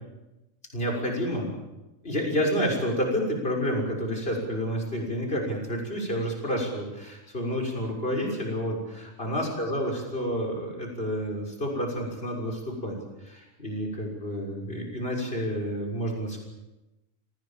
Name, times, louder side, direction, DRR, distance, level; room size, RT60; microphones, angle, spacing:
voice 1, 0.7-1.5 2.0-13.0 13.2-16.4, equal, 45° left, 0 dB, 6.9 m, -29 dB
29.5 x 19.5 x 7.6 m, 1.0 s
omnidirectional pair, 1.4 m